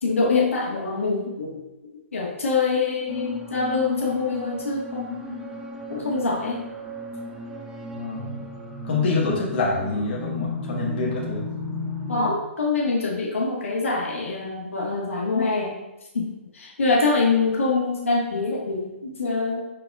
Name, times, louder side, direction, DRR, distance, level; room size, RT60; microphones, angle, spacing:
voice 1, 0.0-1.6 2.1-5.5 5.9-6.6 12.1-15.8 16.1-19.6, left 3 dB, 75° left, -3 dB, 1.3 m, -25 dB
sound 1, 3.1-12.3, left 1 dB, 5° right, 0.5 m, -35 dB
voice 2, 7.9-8.3 8.9-11.5, left 3 dB, 50° left, -4 dB, 1.3 m, -26 dB
5.3 x 4.1 x 2.3 m, 1.0 s
figure-of-eight pair, 130°, 7 cm